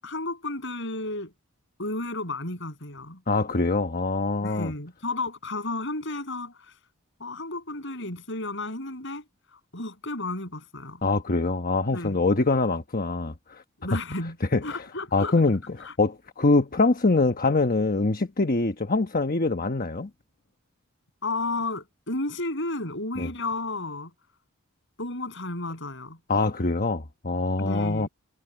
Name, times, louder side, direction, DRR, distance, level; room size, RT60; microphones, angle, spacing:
voice 1, 0.0-1.3 1.8-3.2 4.4-6.7 7.2-9.2 9.5-11.0 11.9-12.2 13.8-14.4 14.6-15.4 15.8-15.9 21.2-24.1 25.0-26.2 27.6-28.1, left 2 dB, 60° left, 7.6 m, -32 dB
voice 2, 3.3-4.7 11.0-13.6 14.5-14.6 15.1-20.1 23.2-23.3 26.3-28.1, left 3 dB, 45° left, 1.1 m, -24 dB
head